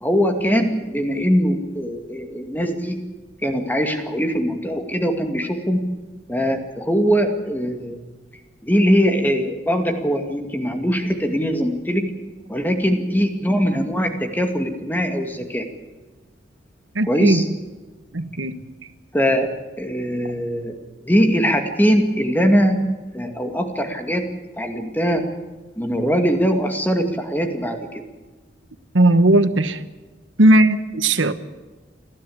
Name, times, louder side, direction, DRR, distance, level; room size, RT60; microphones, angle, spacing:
voice 1, 0.0-3.0 3.4-5.8 6.3-8.0 8.6-12.1 12.5-15.7 17.1-17.4 19.1-20.7 21.0-22.9 23.1-24.3 24.6-25.2 25.8-28.0, equal, 10° left, 2.2 m, -21 dB
voice 2, 16.9-17.5 18.1-18.6 28.9-29.8 30.4-31.3, right 1 dB, 85° right, 1.2 m, -17 dB
29.5 x 12.0 x 8.7 m
head